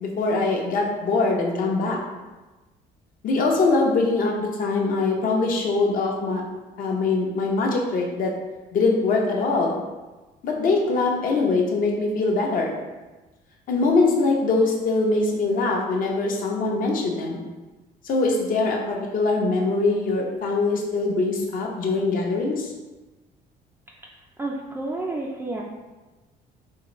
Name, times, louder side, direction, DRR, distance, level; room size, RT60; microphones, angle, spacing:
voice 1, 0.0-2.0 3.2-6.4 6.8-8.3 8.7-9.8 10.4-12.7 13.7-17.4 18.0-22.7, left 3 dB, 55° left, 0 dB, 0.7 m, -22 dB
voice 2, 24.4-25.6, right 2 dB, 15° right, -3 dB, 0.3 m, -30 dB
3.7 x 2.5 x 3.0 m, 1.2 s
cardioid pair, 110°, 17 cm